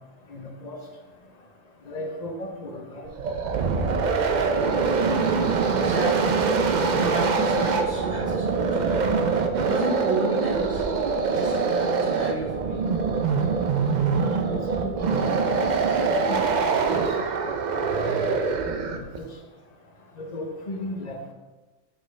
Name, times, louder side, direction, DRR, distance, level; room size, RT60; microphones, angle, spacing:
voice 1, 0.3-0.8 1.9-3.1 3.8-4.4 14.4-15.3 15.9-16.6 16.9-17.0 17.5-19.2 20.2-21.2, left 1 dB, 40° left, 3 dB, 0.8 m, -36 dB
sound 1, 3.1-19.2, right 4 dB, 60° right, 0.4 m, -24 dB
voice 2, 5.7-6.3 6.9-9.0 9.5-10.8 11.2-12.8, right 2 dB, 30° right, -8 dB, 1.3 m, -32 dB
7.3 x 5.7 x 3.2 m, 1.2 s
omnidirectional pair, 1.4 m